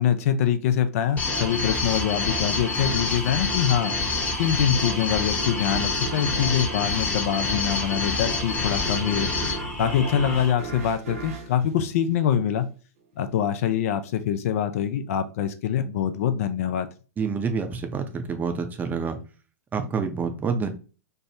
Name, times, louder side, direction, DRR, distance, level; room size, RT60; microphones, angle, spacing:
voice 1, 0.0-3.9 4.4-9.3 9.8-12.7 13.2-16.9, left 9 dB, 60° left, 9 dB, 0.4 m, -24 dB
sound 1, 1.2-10.5, left 3 dB, 15° left, 0.8 m, -27 dB
sound 2, 1.3-12.5, right 4 dB, 60° right, 0.8 m, -37 dB
voice 2, 17.2-19.2 19.7-20.7, right 5 dB, 20° right, 6 dB, 0.5 m, -27 dB
3.3 x 2.1 x 2.7 m, 0.34 s
hypercardioid pair, 105°, 9 cm